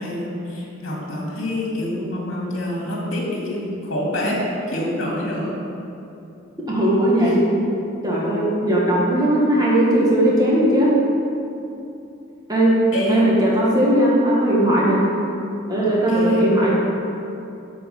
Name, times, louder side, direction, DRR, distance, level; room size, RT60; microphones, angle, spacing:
voice 1, 0.0-4.4 4.7-5.5 7.2-7.3 12.9-13.3 15.8-16.5, left 1 dB, 75° left, -3 dB, 2.4 m, -26 dB
voice 2, 6.7-7.4 8.0-10.9 12.5-12.7 13.1-15.0 15.7-16.7, right 1 dB, 20° right, -6 dB, 1.8 m, -18 dB
8.6 x 5.1 x 7.1 m, 2.7 s
head